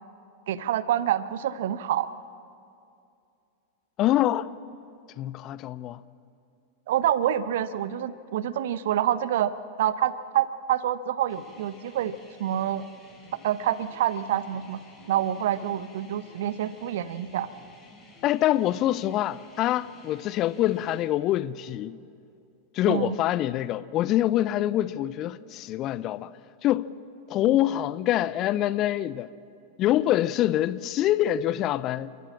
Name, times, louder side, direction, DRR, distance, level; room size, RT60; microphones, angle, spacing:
voice 1, 0.5-2.1 6.9-9.5 9.8-12.8 13.4-14.8 15.1-17.5 22.9-23.2, right 11 dB, 55° right, 0.8 m, -27 dB
voice 2, 4.0-4.5 5.2-6.0 18.2-22.0 22.7-26.3 26.6-26.9 27.3-29.3 29.8-32.1, left 13 dB, 35° left, 0.6 m, -25 dB
sound 1, 11.3-21.1, left 3 dB, 15° left, 5.9 m, -53 dB
30.0 x 14.0 x 7.3 m
figure-of-eight pair, 90°, 0 cm